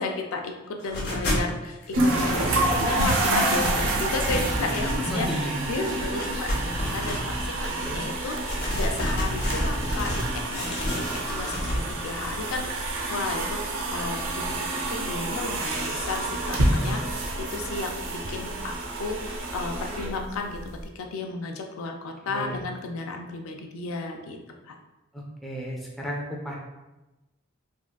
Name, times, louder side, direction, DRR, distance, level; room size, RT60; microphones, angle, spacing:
voice 1, 0.0-13.6 13.9-20.6 20.9-24.4 24.6-24.8, left 3 dB, 90° left, 3 dB, 0.4 m, -33 dB
sound 1, 0.8-1.5 1.8-2.9 3.2-5.4 5.8-7.7 8.3-10.3 10.5-11.8, equal, 50° left, 0.6 m, -31 dB
sound 2, 1.9-20.8, right 2 dB, 70° right, 0.5 m, -28 dB
voice 2, 5.1-5.6 7.8-8.2 22.3-22.6 25.1-26.5, equal, ahead, -3 dB, 0.4 m, -33 dB
3.6 x 2.4 x 2.2 m, 1.1 s
head